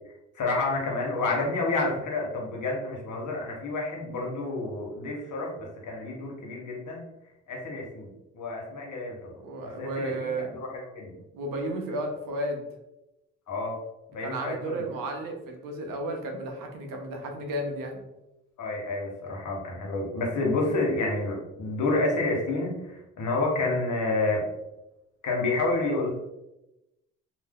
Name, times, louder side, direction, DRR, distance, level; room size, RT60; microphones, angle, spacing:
voice 1, 0.1-7.0 7.5-9.3 9.6-11.2 13.5-13.7 14.1-14.9 18.6-24.4 25.2-26.1, left 2 dB, 65° left, -1 dB, 1.0 m, -29 dB
voice 2, 9.4-10.5 11.3-12.6 14.2-18.0, right 1 dB, 85° right, 2 dB, 0.7 m, -33 dB
2.6 x 2.1 x 3.5 m, 0.94 s
cardioid pair, 65°, 32 cm